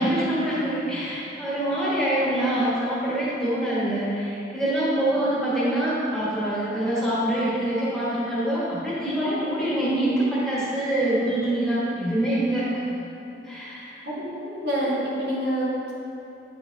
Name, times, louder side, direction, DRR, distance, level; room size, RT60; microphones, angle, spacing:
voice 1, 0.0-12.7 13.4-14.0, right 1 dB, 5° left, -10 dB, 1.6 m, -25 dB
voice 2, 14.0-15.9, equal, 65° right, -6 dB, 1.5 m, -27 dB
9.1 x 5.6 x 2.8 m, 2.8 s
head